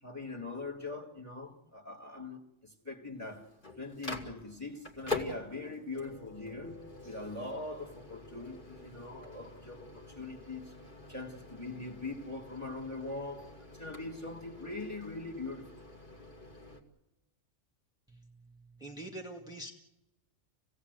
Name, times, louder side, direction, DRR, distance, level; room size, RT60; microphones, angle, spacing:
voice 1, 0.0-10.7 11.1-15.8, left 3 dB, 10° left, 2.0 m, -42 dB
Microwave oven, 3.1-16.8, left 2 dB, 40° left, 2.6 m, -45 dB
voice 2, 18.1-19.7, right 1 dB, 5° right, 2.1 m, -45 dB
29.0 x 17.0 x 8.1 m
omnidirectional pair, 1.3 m